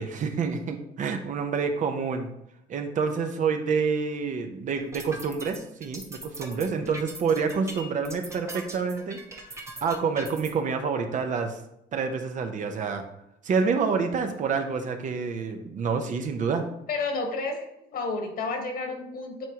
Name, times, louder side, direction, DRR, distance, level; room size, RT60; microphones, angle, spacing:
voice 1, 0.0-2.3 2.7-9.2 9.8-11.6 11.9-13.0 13.4-16.6, right 5 dB, 50° right, 5 dB, 0.8 m, -28 dB
sound 1, 4.8-10.5, right 1 dB, 15° right, 1.0 m, -40 dB
voice 2, 16.9-19.5, left 3 dB, 60° left, 3 dB, 1.5 m, -31 dB
8.9 x 3.6 x 2.9 m, 0.82 s
cardioid pair, 110°, 17 cm